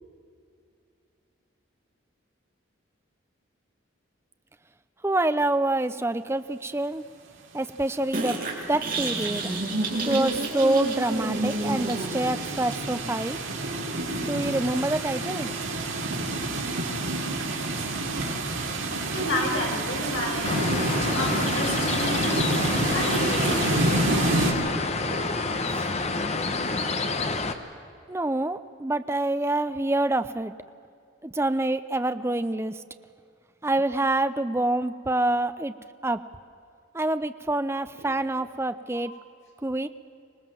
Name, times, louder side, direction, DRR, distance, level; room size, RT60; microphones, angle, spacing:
voice 1, 5.0-7.0 7.5-8.4 8.7-9.5 10.1-13.4 14.2-15.5 25.7-25.9 28.1-30.5 31.2-32.7 33.6-35.7 36.0-36.2 36.9-39.1 39.6-39.9, right 2 dB, 15° right, 11 dB, 0.5 m, -26 dB
sound 1, 8.1-13.1, right 2 dB, 45° right, 3.2 m, -30 dB
sound 2, 8.5-24.5, right 2 dB, 75° right, 3.1 m, -29 dB
voice 2, 18.3-18.7 19.0-23.6 24.6-25.2 38.1-38.4 38.9-39.0, left 1 dB, 65° left, -2 dB, 6.1 m, -32 dB
sound 3, 20.4-27.5, left 3 dB, 30° left, 1.1 m, -28 dB
25.0 x 19.0 x 7.5 m, 2.5 s
head